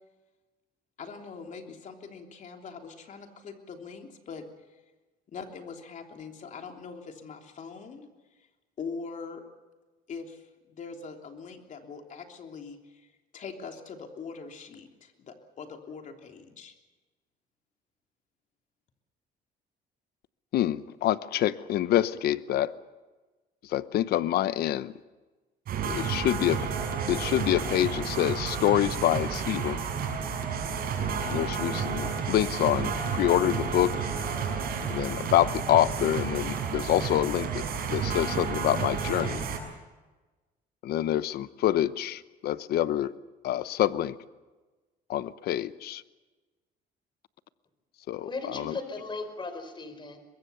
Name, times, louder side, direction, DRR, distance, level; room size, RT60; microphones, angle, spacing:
voice 1, 1.0-4.4 4.7-4.8 5.3-8.1 8.4-8.5 8.8-9.4 10.1-16.7, left 5 dB, 50° left, 3 dB, 3.2 m, -42 dB
voice 2, 20.5-22.7 23.7-24.9 25.9-26.7 27.1-29.8 31.3-34.0 34.9-37.6 37.9-39.5 40.8-43.1 43.4-44.2 45.1-46.0 48.1-48.7, left 12 dB, 70° left, 15 dB, 0.9 m, -26 dB
sound 1, 25.7-39.6, right 6 dB, 60° right, 6.1 m, -31 dB
voice 3, 48.2-50.2, left 3 dB, 30° left, 9 dB, 4.4 m, -37 dB
24.0 x 21.5 x 7.0 m, 1.2 s
cardioid pair, 110°, 17 cm